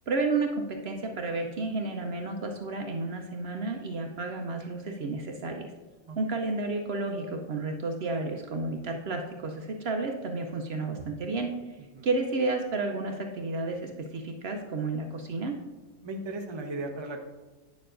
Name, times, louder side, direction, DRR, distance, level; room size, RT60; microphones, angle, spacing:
voice 1, 0.1-5.7 6.2-11.8 12.0-15.6, right 3 dB, 60° right, 3 dB, 0.8 m, -31 dB
voice 2, 16.0-17.2, right 2 dB, 25° right, 2 dB, 0.6 m, -36 dB
9.3 x 6.8 x 2.5 m, 1.2 s
omnidirectional pair, 1.4 m